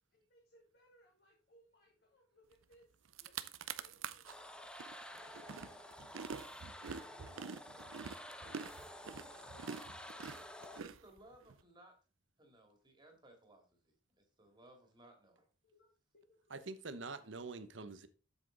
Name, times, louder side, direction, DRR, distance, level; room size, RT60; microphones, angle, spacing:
voice 1, 0.1-2.9 3.2-4.7 5.1-8.0 8.3-11.1 15.6-15.9 16.2-17.0, left 1 dB, 50° left, 2.5 m, -68 dB
sound 1, 2.7-2.8 3.1-4.3 4.8-11.5, right 6 dB, 85° right, 0.6 m, -46 dB
sound 2, 4.3-10.8, left 1 dB, 5° left, 0.7 m, -51 dB
voice 2, 10.8-11.9 12.4-15.5, right 1 dB, 20° right, 2.3 m, -62 dB
voice 3, 16.5-18.1, right 3 dB, 65° right, 0.9 m, -45 dB
8.0 x 7.6 x 3.9 m
head